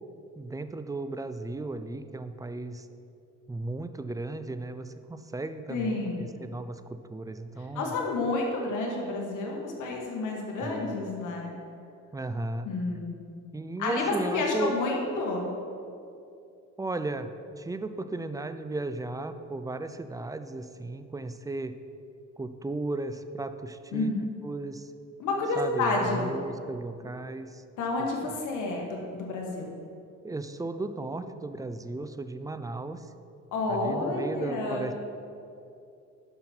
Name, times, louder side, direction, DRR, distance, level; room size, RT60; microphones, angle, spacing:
voice 1, 0.4-2.9 3.5-7.9 10.6-10.9 12.1-12.7 13.5-14.7 16.8-17.3 17.6-21.7 22.4-24.1 24.4-24.9 25.6-27.6 28.2-28.3 30.2-33.1 33.7-35.0, right 2 dB, 10° right, 10 dB, 0.5 m, -35 dB
voice 2, 5.7-6.3 7.7-11.5 12.6-13.2 13.8-15.5 23.9-24.3 25.2-26.3 27.8-29.7 33.5-34.9, left 3 dB, 85° left, -1 dB, 1.5 m, -30 dB
12.0 x 5.7 x 4.4 m, 2.5 s
cardioid pair, 90°, 30 cm